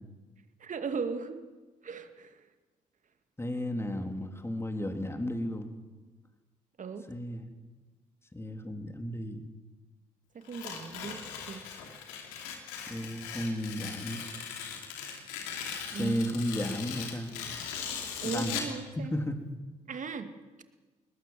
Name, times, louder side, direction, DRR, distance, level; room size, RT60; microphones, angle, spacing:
voice 1, 0.6-1.4 1.8-2.3 6.8-7.1 10.3-11.6 15.9-16.2 18.2-19.1 19.9-20.3, right 5 dB, 50° right, 8 dB, 2.4 m, -37 dB
voice 2, 3.4-5.7 7.1-7.5 8.3-9.4 12.9-14.2 15.9-17.4 18.2-18.6 19.1-19.4, equal, 15° left, 5 dB, 3.6 m, -34 dB
Tearing, 10.4-18.8, left 7 dB, 85° left, 2.9 m, -39 dB
22.0 x 20.0 x 7.8 m, 1.2 s
hypercardioid pair, 50°, 17 cm